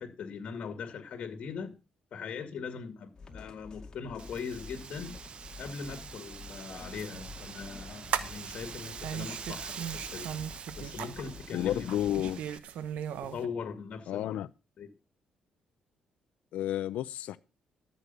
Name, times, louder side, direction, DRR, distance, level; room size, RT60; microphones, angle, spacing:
voice 1, 0.0-1.7 2.1-5.2 5.6-10.3 10.8-12.0 13.2-14.4 14.8-14.9, left 5 dB, 55° left, 2.3 m, -40 dB
sound 1, 3.1-12.4, left 4 dB, 30° left, 2.3 m, -49 dB
Wind, 4.2-12.6, right 6 dB, 45° right, 0.8 m, -45 dB
sound 2, 7.0-13.5, right 9 dB, 80° right, 1.1 m, -38 dB
voice 2, 11.5-12.4 14.1-14.5 16.5-17.4, left 12 dB, 85° left, 0.6 m, -31 dB
13.5 x 6.9 x 5.6 m
cardioid pair, 105°, 2 cm